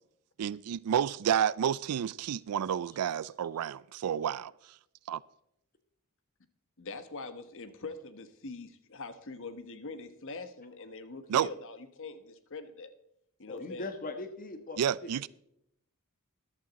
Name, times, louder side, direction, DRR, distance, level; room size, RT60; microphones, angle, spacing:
voice 1, 0.4-4.5 5.1-5.2 11.3-11.5 14.8-15.3, right 9 dB, 85° right, 0.4 m, -30 dB
voice 2, 6.8-12.9 13.4-13.9, left 3 dB, 60° left, 1.1 m, -43 dB
voice 3, 13.5-15.1, left 3 dB, 40° left, 1.4 m, -40 dB
14.0 x 11.0 x 4.1 m
head